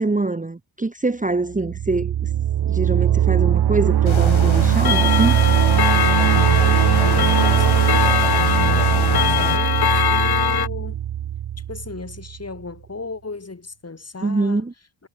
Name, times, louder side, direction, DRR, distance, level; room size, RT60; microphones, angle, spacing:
voice 1, 0.0-2.3 2.7-5.4 14.2-14.7, right 3 dB, 15° right, 1.0 m, -24 dB
sound 1, 1.5-12.3, right 11 dB, 55° right, 0.5 m, -19 dB
sound 2, 4.1-9.6, left 7 dB, 80° left, 2.6 m, -29 dB
Clock, 4.8-10.7, left 9 dB, 55° left, 0.8 m, -22 dB
voice 2, 7.0-8.2 8.5-11.0 11.7-14.6, left 3 dB, 30° left, 2.5 m, -35 dB
wide cardioid pair, 100°, 47 cm